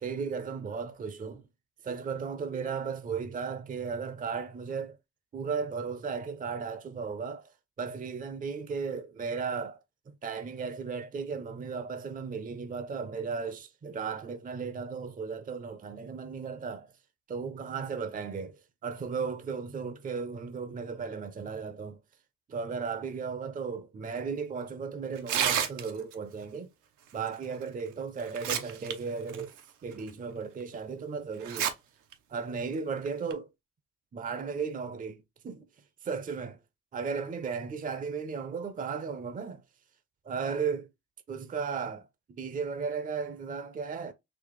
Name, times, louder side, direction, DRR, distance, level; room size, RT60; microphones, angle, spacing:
voice 1, 0.0-1.5 1.8-5.0 5.3-7.5 7.8-9.8 10.1-16.9 17.3-18.6 18.8-22.0 22.5-26.7 27.1-29.5 29.8-31.7 32.3-33.5 34.1-35.2 35.4-35.6 36.0-36.6 36.9-39.6 40.2-40.9 41.3-42.0 42.3-44.1, right 5 dB, 30° right, 0.6 m, -35 dB
Tearing, 25.2-26.1 27.6-27.7 28.2-28.9 29.3-29.4 30.1-30.2 31.4-31.7 32.1-32.2 33.1-33.3, right 9 dB, 85° right, 0.7 m, -29 dB
4.1 x 2.4 x 3.1 m
cardioid pair, 90°, 30 cm